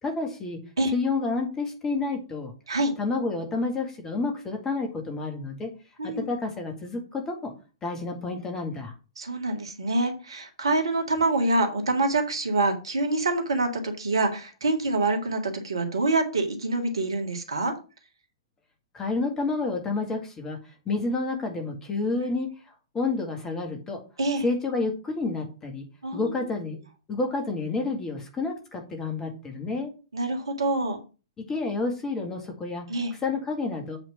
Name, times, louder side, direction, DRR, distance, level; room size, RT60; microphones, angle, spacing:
voice 1, 0.0-0.6 0.9-2.5 3.0-5.7 6.0-7.5 7.8-8.9 18.9-20.6 20.9-22.5 22.9-24.0 24.4-25.9 26.1-26.8 27.1-29.9 31.4-32.8 33.1-34.0, left 3 dB, 15° left, 3 dB, 2.1 m, -29 dB
voice 2, 9.2-17.7 24.2-24.4 26.0-26.3 30.1-31.0 32.9-33.1, right 2 dB, 65° right, 5 dB, 1.9 m, -26 dB
7.9 x 4.3 x 5.8 m, 0.33 s
figure-of-eight pair, 115°, 3 cm